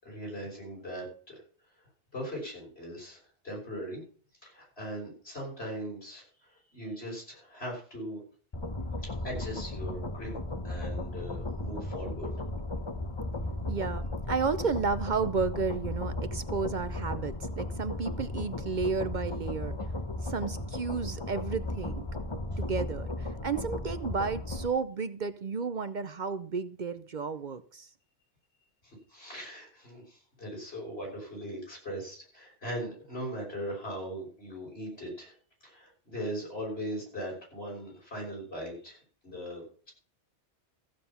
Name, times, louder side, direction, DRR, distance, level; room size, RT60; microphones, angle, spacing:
voice 1, 0.0-1.4 2.1-4.0 4.4-8.2 9.0-10.3 10.6-12.3 22.5-22.6 28.8-35.3 35.6-39.9, equal, 65° left, -2 dB, 6.1 m, -39 dB
sound 1, 8.5-24.7, left 2 dB, 25° left, 1.0 m, -35 dB
voice 2, 13.7-19.8 20.2-22.1 22.6-27.9, right 5 dB, 50° right, 12 dB, 0.7 m, -32 dB
14.5 x 7.6 x 5.6 m, 0.43 s
omnidirectional pair, 1.1 m